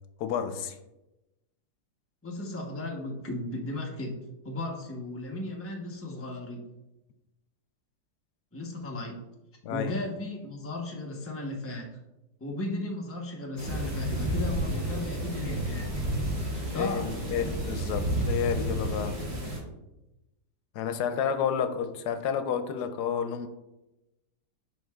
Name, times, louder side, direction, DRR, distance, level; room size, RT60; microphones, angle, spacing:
voice 1, 0.2-0.8 9.6-10.0 16.7-19.2 20.7-23.5, left 7 dB, 80° left, 9 dB, 1.1 m, -30 dB
voice 2, 2.2-4.2 4.4-6.6 8.5-9.2 9.7-11.9 12.4-16.0 16.5-17.0, left 2 dB, 10° left, -1 dB, 0.7 m, -35 dB
sound 1, 13.6-19.6, right 1 dB, 30° right, 1.7 m, -31 dB
11.0 x 4.0 x 2.3 m, 0.95 s
omnidirectional pair, 1.7 m